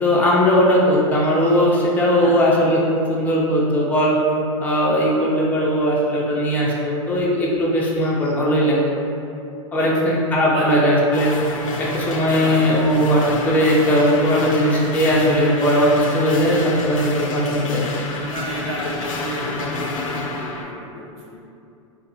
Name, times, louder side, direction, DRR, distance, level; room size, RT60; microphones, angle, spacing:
voice 1, 0.0-2.8 3.1-4.2 4.6-8.8 9.7-11.3 11.8-17.9, equal, 10° left, -5 dB, 0.4 m, -18 dB
voice 2, 2.2-2.6 8.2-8.4 9.8-10.1 10.5-10.9 12.2-12.8 18.2-21.3, right 1 dB, 55° right, -4 dB, 0.6 m, -33 dB
sound 1, 11.1-20.7, left 3 dB, 75° left, 0.4 m, -29 dB
2.5 x 2.4 x 2.7 m, 2.6 s
hypercardioid pair, 105°, 17 cm